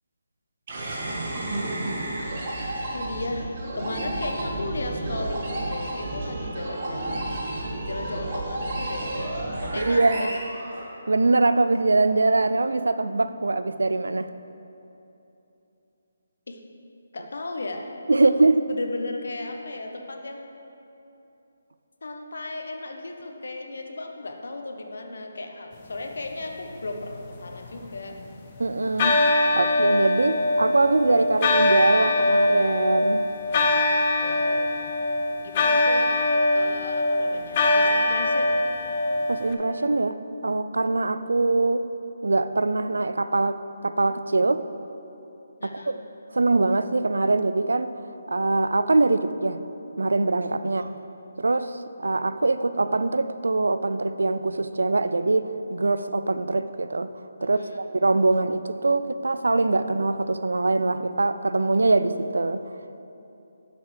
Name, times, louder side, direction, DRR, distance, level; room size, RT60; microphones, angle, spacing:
sound 1, 0.7-11.3, right 1 dB, 45° right, 1.7 m, -31 dB
voice 1, 2.9-3.5 3.7-7.4 7.8-9.1 9.6-10.4 16.5-16.6 17.1-17.9 18.2-18.4 18.7-20.5 22.0-28.3 34.2-34.7 35.4-36.1 36.5-38.6 45.6-46.0 50.6-50.9 57.4-57.9, left 2 dB, 75° left, 4 dB, 1.0 m, -35 dB
voice 2, 9.7-10.3 11.1-14.3 18.1-18.7 28.6-33.3 39.3-40.2 40.4-41.8 42.2-44.6 45.6-46.0 46.3-47.9 48.3-49.6 50.0-50.9 51.4-57.1 57.4-62.6, right 3 dB, 85° right, 12 dB, 0.4 m, -23 dB
sound 2, 27.0-28.4 29.0-39.5, left 2 dB, 30° left, 0.7 m, -22 dB
10.5 x 7.2 x 3.4 m, 2.9 s
hypercardioid pair, 160°, 0 cm